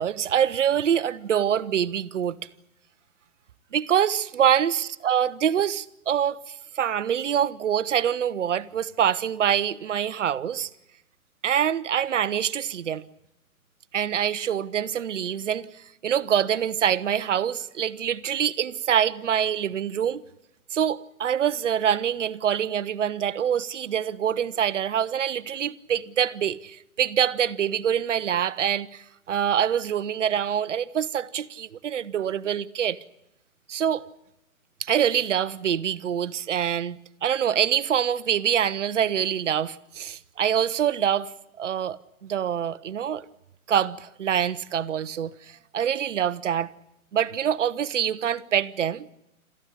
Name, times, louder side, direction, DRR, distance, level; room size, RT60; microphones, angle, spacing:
voice 1, 0.0-2.4 3.7-10.7 11.4-13.0 13.9-15.7 16.0-20.2 20.7-33.0 33.7-34.0 34.8-41.3 41.6-43.3 43.7-46.7 47.1-49.1, right 9 dB, 55° right, 1.1 m, -25 dB
27.5 x 14.5 x 9.9 m
figure-of-eight pair, 135°, 43 cm